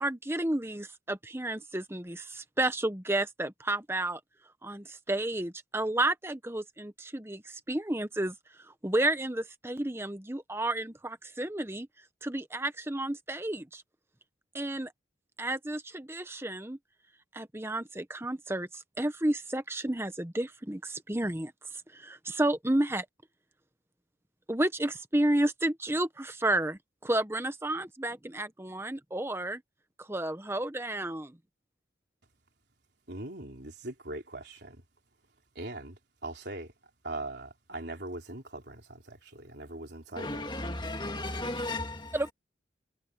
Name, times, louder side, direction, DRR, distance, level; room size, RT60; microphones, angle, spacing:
voice 1, 0.0-4.2 4.6-8.3 8.8-11.9 12.2-13.8 14.5-14.9 15.4-16.8 17.3-21.5 21.9-23.0 24.5-29.6 30.0-31.4 42.1-42.3, right 1 dB, 15° right, 1.1 m, -31 dB
voice 2, 33.1-34.8 35.6-36.7 37.0-40.5, right 2 dB, 60° right, 3.9 m, -41 dB
voice 3, 40.2-42.2, left 2 dB, 25° left, 2.3 m, -35 dB
head